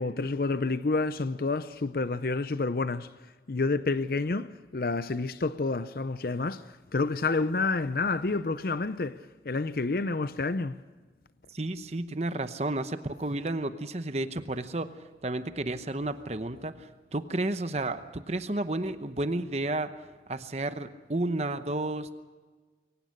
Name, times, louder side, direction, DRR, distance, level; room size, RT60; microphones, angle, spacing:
voice 1, 0.0-3.1 3.5-10.8, left 3 dB, 55° left, 0.6 m, -29 dB
voice 2, 11.5-19.9 20.3-22.1, right 2 dB, 35° right, 0.9 m, -32 dB
23.0 x 19.0 x 6.5 m
head